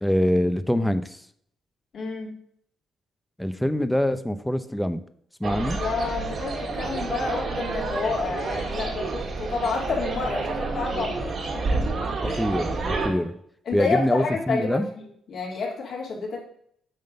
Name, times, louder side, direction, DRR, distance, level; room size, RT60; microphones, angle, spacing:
voice 1, 0.0-1.2 3.4-5.0 5.4-5.8 12.2-13.4 13.7-14.9, equal, 5° left, 11 dB, 0.7 m, -24 dB
voice 2, 1.9-2.3 5.8-11.9 12.3-12.4 13.7-16.4, left 4 dB, 60° left, -2 dB, 3.3 m, -29 dB
sound 1, 5.4-13.1, right 3 dB, 50° right, 2.1 m, -29 dB
9.0 x 3.7 x 6.8 m, 0.65 s
cardioid pair, 90°, 0 cm